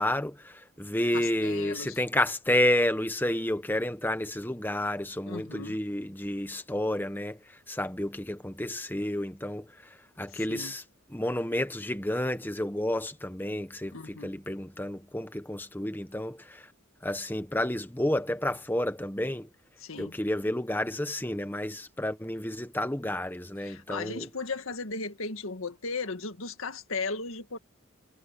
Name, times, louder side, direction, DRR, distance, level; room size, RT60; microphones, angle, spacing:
voice 1, 0.0-10.8 11.1-16.7 17.0-19.5 20.0-24.3, left 1 dB, 10° left, 1.2 m, -30 dB
voice 2, 1.1-2.0 5.3-5.8 10.3-10.8 13.9-14.3 19.8-20.2 23.6-27.6, left 4 dB, 80° left, 1.9 m, -36 dB
head